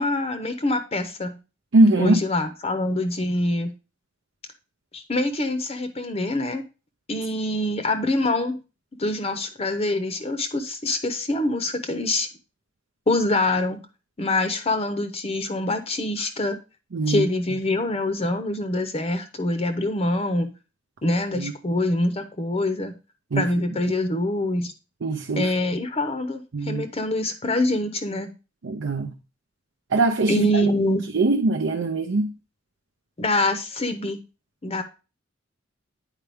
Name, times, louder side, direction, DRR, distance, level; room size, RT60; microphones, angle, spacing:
voice 1, 0.0-1.4 2.0-3.7 4.9-6.6 7.1-8.6 9.0-12.3 13.1-13.8 14.2-16.6 17.1-20.5 21.0-22.9 23.4-24.7 25.4-28.3 30.3-31.0 33.2-34.2 34.6-34.8, left 1 dB, 30° left, 0.7 m, -25 dB
voice 2, 1.7-2.2 16.9-17.3 21.4-21.5 23.3-23.5 25.0-25.5 26.5-26.8 28.6-29.1 29.9-30.5 31.1-32.3, right 2 dB, 70° right, 0.6 m, -21 dB
9.0 x 4.5 x 3.4 m
head